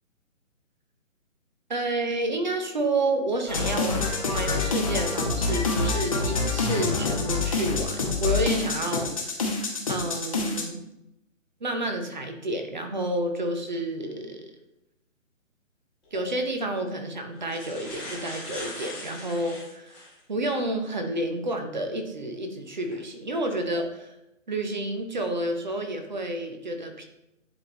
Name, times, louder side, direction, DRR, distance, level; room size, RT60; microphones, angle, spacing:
voice 1, 1.7-4.1 4.3-9.1 9.9-10.8 11.6-14.5 16.1-20.0 20.3-24.2 24.5-27.0, right 1 dB, 35° right, 5 dB, 0.8 m, -30 dB
sound 1, 3.5-10.6, left 3 dB, 25° left, 0.8 m, -26 dB
sound 2, 16.0-16.2 17.0-17.1 17.4-20.2 20.8-20.9 22.7-22.9 23.5-23.8, left 1 dB, ahead, 1.3 m, -40 dB
10.5 x 3.5 x 3.0 m, 0.88 s
figure-of-eight pair, 145°, 40 cm